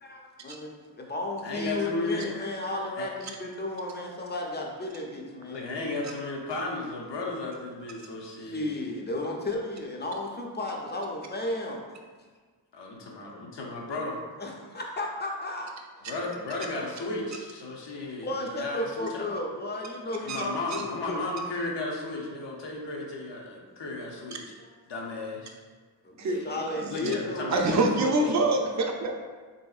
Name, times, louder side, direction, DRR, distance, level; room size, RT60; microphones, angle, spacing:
voice 1, 0.0-5.7 8.4-11.8 14.4-15.7 17.9-21.2 26.0-27.9, left 2 dB, 25° left, 0 dB, 0.4 m, -34 dB
voice 2, 1.4-2.5 3.0-3.1 5.5-8.8 12.7-14.2 16.0-19.3 20.2-24.4 24.9-25.5 26.2-28.4, left 2 dB, 70° left, -1 dB, 0.7 m, -34 dB
voice 3, 26.2-27.1 27.5-29.2, right 2 dB, 40° right, 2 dB, 0.4 m, -26 dB
3.4 x 2.7 x 2.3 m, 1.4 s
cardioid pair, 70°, 45 cm